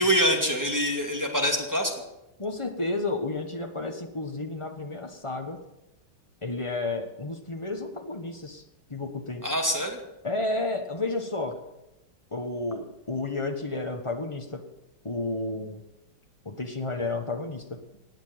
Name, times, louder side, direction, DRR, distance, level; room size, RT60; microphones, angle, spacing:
voice 1, 0.0-1.9 9.4-10.0, equal, 10° right, 1 dB, 2.0 m, -25 dB
voice 2, 2.4-5.6 6.4-8.6 8.9-9.4 10.2-11.6 12.3-14.6 15.0-15.8 16.4-17.8, left 2 dB, 20° left, 5 dB, 1.2 m, -31 dB
19.0 x 7.2 x 8.8 m, 0.95 s
omnidirectional pair, 2.2 m